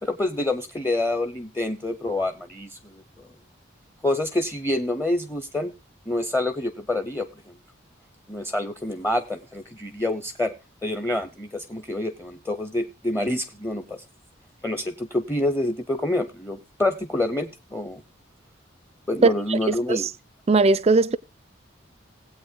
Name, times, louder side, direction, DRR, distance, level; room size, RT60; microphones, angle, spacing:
voice 1, 0.0-3.0 4.0-5.7 6.1-7.3 8.3-10.5 10.8-14.0 14.6-18.0 19.1-20.1, left 1 dB, 10° left, 0.6 m, -27 dB
voice 2, 19.5-20.1 20.5-21.2, right 3 dB, 30° right, 0.4 m, -20 dB
18.5 x 8.4 x 2.3 m
head